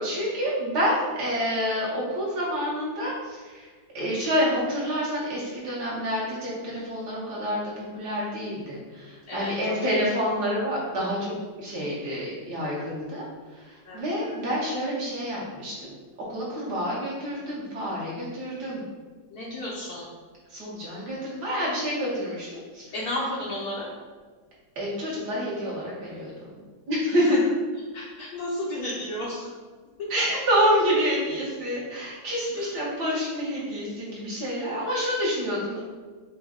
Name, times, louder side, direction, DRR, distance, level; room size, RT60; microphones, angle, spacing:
voice 1, 0.0-3.7 3.9-13.2 13.5-15.9 16.3-18.8 20.5-22.9 24.8-26.6 26.9-27.4 30.1-35.8, equal, 60° right, -6 dB, 1.6 m, -28 dB
voice 2, 9.3-9.9 13.9-14.4 19.3-20.1 22.9-23.9 27.0-27.4 27.9-29.5 30.0-30.2 32.5-32.7, left 1 dB, 65° left, -4 dB, 0.9 m, -33 dB
5.0 x 2.2 x 3.6 m, 1.4 s
omnidirectional pair, 2.1 m